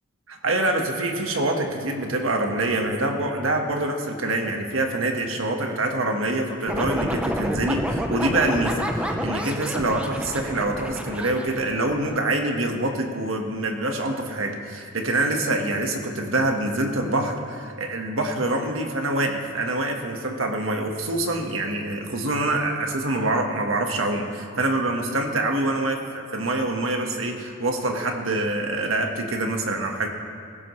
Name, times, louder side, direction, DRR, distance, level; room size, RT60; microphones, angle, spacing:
voice 1, 0.3-26.0 26.3-30.1, right 2 dB, 80° right, 3 dB, 1.5 m, -25 dB
sound 1, 6.7-12.2, equal, 5° right, 0.8 m, -29 dB
16.5 x 16.0 x 3.2 m, 2.4 s
head